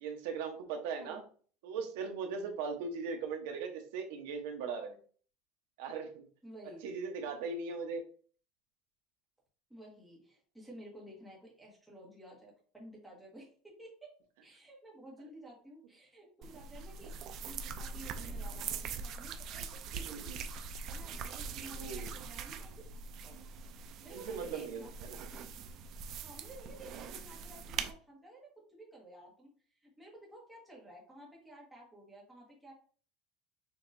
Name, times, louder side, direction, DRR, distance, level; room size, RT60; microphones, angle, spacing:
voice 1, 0.0-1.2 1.6-5.0 5.8-6.2 6.8-8.0 20.1-20.4 21.7-22.1 24.1-25.2, right 5 dB, 70° right, 4 dB, 1.0 m, -39 dB
voice 2, 6.4-6.9 9.7-14.1 14.4-17.1 17.4-20.4 20.9-22.8 23.2-23.4 24.0-24.9 25.3-25.4 26.2-29.5 29.8-32.7, right 1 dB, 5° right, -4 dB, 1.5 m, -53 dB
sound 1, 16.4-27.9, right 5 dB, 35° right, 0.4 m, -42 dB
6.4 x 2.9 x 2.6 m, 0.43 s
cardioid pair, 180°, 0 cm